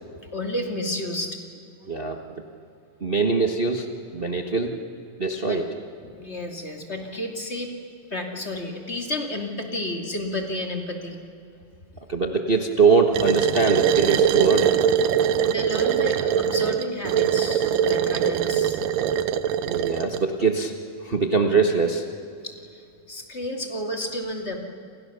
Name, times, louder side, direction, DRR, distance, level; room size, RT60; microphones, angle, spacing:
voice 1, 0.3-1.4 5.4-5.6 6.0-7.7 8.1-11.2 15.4-18.8 22.4-24.6, left 1 dB, 20° left, 3 dB, 2.4 m, -31 dB
voice 2, 1.9-2.2 3.0-3.9 4.1-4.8 5.2-5.6 12.1-14.8 19.6-20.7 21.0-22.0, right 4 dB, 60° right, 4 dB, 0.5 m, -22 dB
sound 1, 13.1-20.3, right 8 dB, 90° right, 2.6 m, -22 dB
28.5 x 28.5 x 6.9 m, 2.6 s
omnidirectional pair, 3.7 m